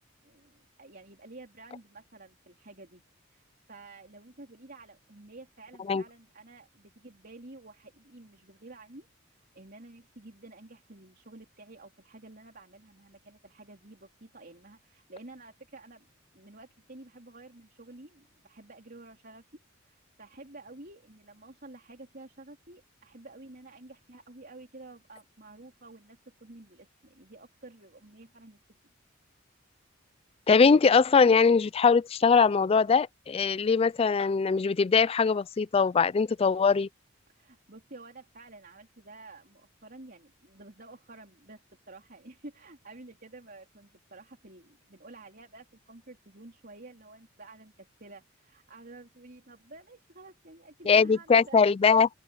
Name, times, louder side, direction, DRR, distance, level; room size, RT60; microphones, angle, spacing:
voice 1, 0.2-3.0 3.3-16.1 16.3-19.5 19.8-28.6 37.3-51.6 51.9-52.0, right 2 dB, 50° right, 3.9 m, -50 dB
voice 2, 30.5-36.9 50.9-52.1, left 5 dB, 30° left, 0.3 m, -22 dB
open air
head